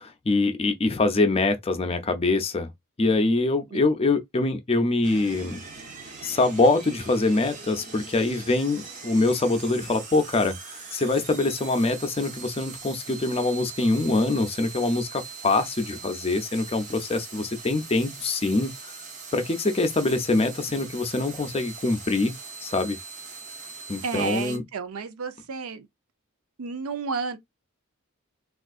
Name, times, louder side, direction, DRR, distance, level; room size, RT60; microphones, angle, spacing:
voice 1, 0.0-2.7 3.0-5.6 6.2-18.7 19.3-22.3 22.6-23.0 23.9-24.6, left 2 dB, 25° left, 0.5 m, -24 dB
sound 1, 5.0-24.6, right 4 dB, 35° right, 0.8 m, -41 dB
voice 2, 24.0-25.9 26.6-27.4, right 5 dB, 75° right, 0.5 m, -31 dB
3.5 x 2.4 x 2.3 m
head